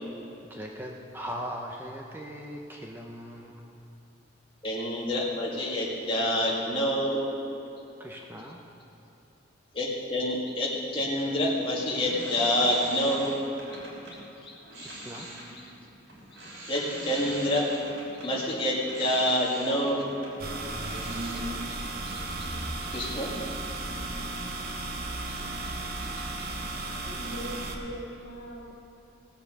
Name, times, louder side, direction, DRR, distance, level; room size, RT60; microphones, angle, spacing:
voice 1, 0.4-3.8 8.0-8.6 14.8-15.3, equal, 10° right, 0 dB, 0.7 m, -39 dB
voice 2, 4.6-7.2 9.7-13.3 14.1-14.2 14.4-14.9 16.7-17.6 18.2-20.0 21.3-21.4 22.0-22.5 22.9-23.4 23.8-23.9, left 1 dB, 30° left, -5 dB, 2.2 m, -28 dB
sound 1, 11.1-14.2 14.6-21.3, right 1 dB, 80° right, 3.6 m, -44 dB
sound 2, 20.4-27.8, right 2 dB, 50° right, 1.1 m, -34 dB
voice 3, 27.0-28.7, equal, 55° left, -3 dB, 2.2 m, -40 dB
17.0 x 7.4 x 6.7 m, 2.8 s
head